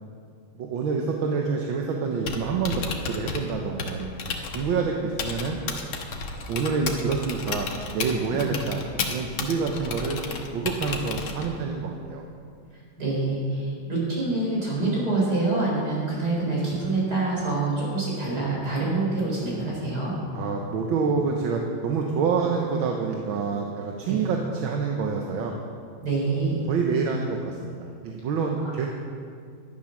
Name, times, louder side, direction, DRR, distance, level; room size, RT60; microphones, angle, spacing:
voice 1, 0.6-4.1 4.5-5.6 6.5-8.8 9.1-10.2 10.5-12.2 20.3-25.5 26.7-28.9, right 5 dB, 75° right, 1 dB, 1.8 m, -27 dB
Typing, 2.1-11.7, left 4 dB, 80° left, 2.0 m, -33 dB
voice 2, 13.0-20.1 24.1-24.2 26.0-26.7 28.6-28.7, right 3 dB, 50° right, -4 dB, 5.0 m, -26 dB
11.5 x 11.5 x 6.4 m, 2.3 s
omnidirectional pair, 2.2 m